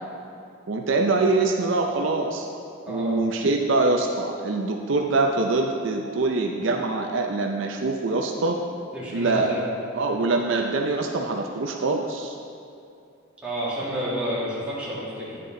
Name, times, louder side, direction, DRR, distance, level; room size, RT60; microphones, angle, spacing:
voice 1, 0.7-2.5 2.9-8.6 9.1-9.5 9.9-12.3, right 3 dB, 60° right, 2 dB, 0.5 m, -24 dB
voice 2, 2.9-3.2 8.9-9.7 13.4-15.4, equal, 5° right, -9 dB, 2.2 m, -30 dB
9.9 x 6.7 x 3.8 m, 2.6 s
head